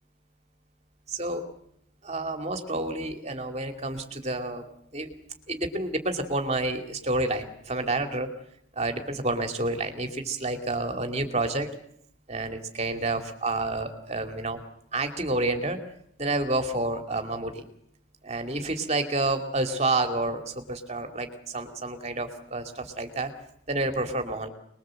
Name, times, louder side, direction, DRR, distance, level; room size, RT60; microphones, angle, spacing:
voice 1, 1.1-1.4 2.0-4.6 4.9-5.1 5.5-8.3 8.8-11.7 12.3-14.6 14.9-15.8 16.2-17.6 18.2-21.3 21.5-23.3 23.7-24.5, right 2 dB, 30° right, 6 dB, 2.8 m, -29 dB
27.5 x 21.5 x 7.8 m, 0.72 s
head